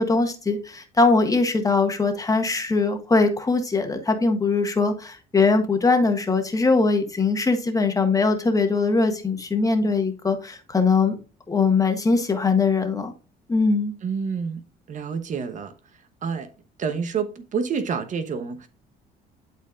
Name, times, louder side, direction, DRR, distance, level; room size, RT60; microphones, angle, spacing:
voice 1, 0.0-11.2 11.5-13.1 13.5-13.9, left 3 dB, 20° left, 1.5 m, -21 dB
voice 2, 14.0-14.6 14.9-15.7 16.0-16.5 16.8-18.7, right 6 dB, 50° right, 1.0 m, -28 dB
11.5 x 4.4 x 2.5 m
cardioid pair, 110°, 17 cm